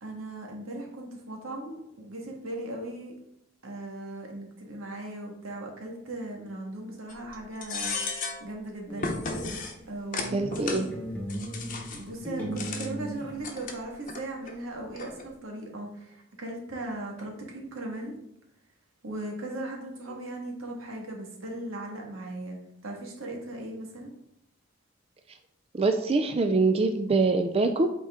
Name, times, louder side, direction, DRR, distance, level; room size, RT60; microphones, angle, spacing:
voice 1, 0.0-3.1 3.6-9.6 9.9-10.8 11.9-18.1 19.0-22.6 22.8-24.1, right 1 dB, 90° right, 0 dB, 1.8 m, -38 dB
sound 1, 7.1-7.3 7.6-8.4 9.0-9.7 10.1-10.8 11.3-12.0 12.5-12.9 13.4-14.2 14.5-14.6 15.0-15.2, left 4 dB, 40° left, 0.9 m, -34 dB
sound 2, 8.9-9.9 10.2-13.7, right 1 dB, 10° left, 1.2 m, -38 dB
voice 2, 10.3-10.9 25.7-27.9, right 3 dB, 30° right, 6 dB, 0.4 m, -24 dB
8.2 x 4.4 x 3.6 m, 0.79 s
head